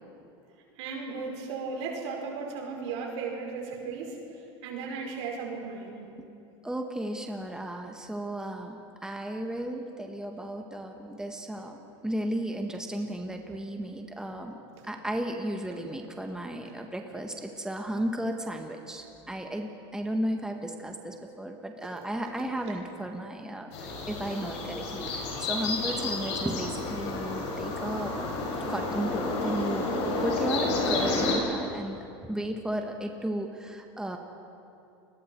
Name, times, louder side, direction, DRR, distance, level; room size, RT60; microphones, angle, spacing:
voice 1, 0.8-4.2 4.6-6.0 14.8-14.9 16.7-16.8 21.8-21.9 25.1-25.2, right 4 dB, 75° right, 1 dB, 5.1 m, -36 dB
voice 2, 6.6-14.6 14.9-28.1 28.7-29.9 30.2-34.2, right 1 dB, 5° right, 3 dB, 1.7 m, -34 dB
sound 1, 23.7-31.3, left 2 dB, 75° left, 6.6 m, -30 dB
30.0 x 21.5 x 4.7 m, 2.7 s
supercardioid pair, 105°, 15 cm